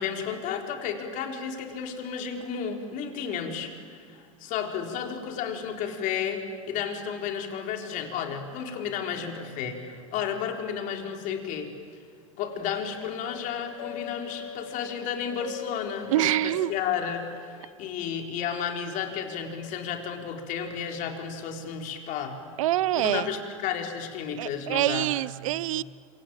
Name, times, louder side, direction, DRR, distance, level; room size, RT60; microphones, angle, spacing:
voice 1, 0.0-11.7 12.4-22.5 22.9-25.1, left 7 dB, 50° left, 4 dB, 4.0 m, -32 dB
sound 1, 12.4-17.7, left 10 dB, 80° left, 2.5 m, -42 dB
voice 2, 16.1-16.7 22.6-23.3 24.4-25.8, right 15 dB, 75° right, 21 dB, 0.7 m, -25 dB
26.5 x 24.5 x 8.9 m, 2.2 s
hypercardioid pair, 105°, 17 cm